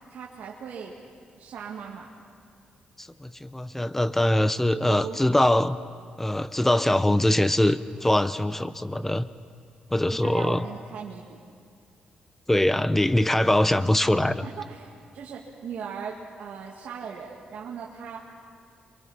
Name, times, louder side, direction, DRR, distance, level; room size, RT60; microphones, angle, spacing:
voice 1, 0.1-0.9 1.4-2.1 4.7-5.6 10.1-11.4 14.4-18.2, right 6 dB, 70° right, -3 dB, 2.1 m, -38 dB
voice 2, 3.0-5.8 6.2-9.3 9.9-10.6 12.5-14.4, left 1 dB, 10° left, 14 dB, 0.8 m, -23 dB
27.0 x 23.5 x 5.7 m, 2.3 s
cardioid pair, 80°, 3 cm